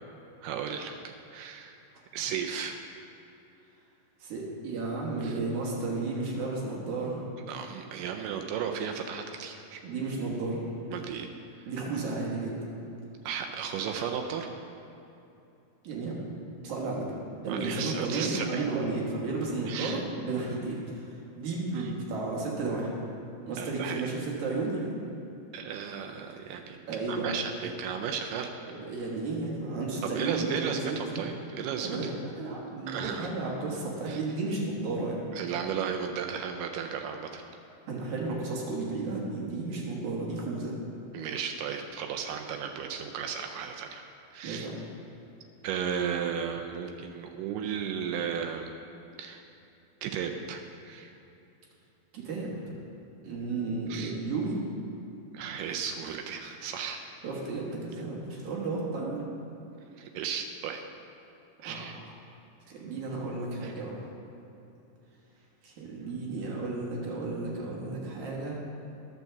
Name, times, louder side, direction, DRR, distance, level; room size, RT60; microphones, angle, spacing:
voice 1, 0.4-1.8 2.1-2.8 5.2-5.4 7.5-9.8 10.9-11.3 13.2-14.6 17.5-18.7 19.7-20.0 21.8-21.9 23.6-24.0 25.5-26.8 27.1-28.5 30.0-32.1 32.9-33.3 34.1-34.2 35.4-37.4 41.1-44.0 44.3-44.7 45.6-48.7 49.2-49.4 50.0-51.1 53.9-54.1 55.3-57.0 60.0-60.8 61.6-62.0 63.6-63.7, right 7 dB, 90° right, 4 dB, 1.8 m, -34 dB
voice 2, 4.2-7.3 9.8-10.6 11.7-12.6 15.8-16.2 16.6-17.1 17.4-22.9 23.5-24.9 26.9-27.4 28.7-31.2 31.8-35.4 37.9-40.7 44.4-44.8 52.1-52.7 53.2-54.6 57.2-59.3 61.6-61.9 62.7-64.1 65.6-68.5, right 3 dB, 60° right, -3 dB, 2.6 m, -33 dB
11.0 x 5.8 x 7.0 m, 2.8 s
omnidirectional pair, 4.4 m